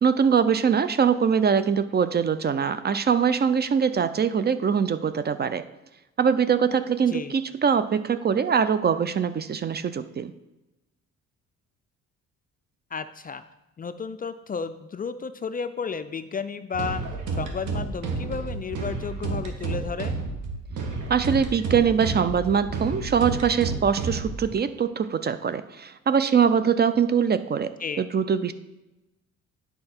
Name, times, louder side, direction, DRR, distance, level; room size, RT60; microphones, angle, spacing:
voice 1, 0.0-5.6 6.2-10.3 21.1-28.5, right 7 dB, 35° right, 12 dB, 0.4 m, -23 dB
voice 2, 12.9-13.4 13.8-17.0 17.3-20.2 27.8-28.0, left 5 dB, 30° left, 11 dB, 0.4 m, -33 dB
sound 1, 16.7-24.5, right 3 dB, 80° right, 1.3 m, -31 dB
8.6 x 5.6 x 4.4 m, 0.99 s
cardioid pair, 90°, 30 cm